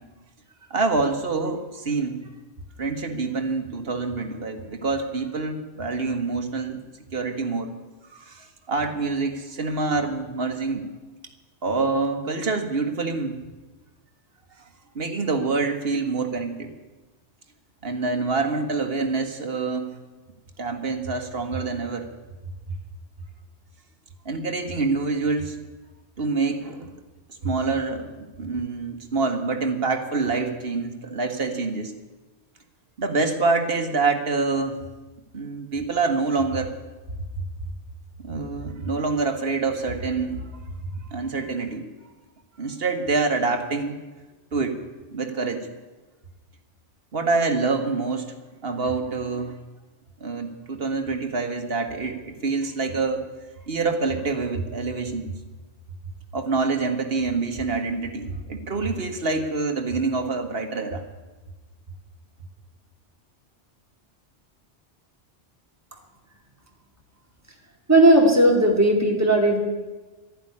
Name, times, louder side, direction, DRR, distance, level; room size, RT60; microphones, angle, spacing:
voice 1, 0.7-2.2 2.8-6.8 7.1-7.7 8.1-10.9 11.6-13.4 14.9-16.7 17.8-19.9 20.6-22.1 24.2-25.6 26.2-26.9 27.4-31.9 33.0-34.8 35.3-36.7 38.2-40.5 41.1-41.9 42.6-44.0 44.5-44.8 45.1-45.7 47.1-48.3 48.6-49.5 50.2-53.2 53.7-55.2 56.3-61.0, right 3 dB, 55° right, 5 dB, 1.8 m, -26 dB
voice 2, 67.9-69.6, right 1 dB, 15° right, 1 dB, 2.4 m, -16 dB
12.0 x 11.0 x 9.9 m, 1.2 s
omnidirectional pair, 1.2 m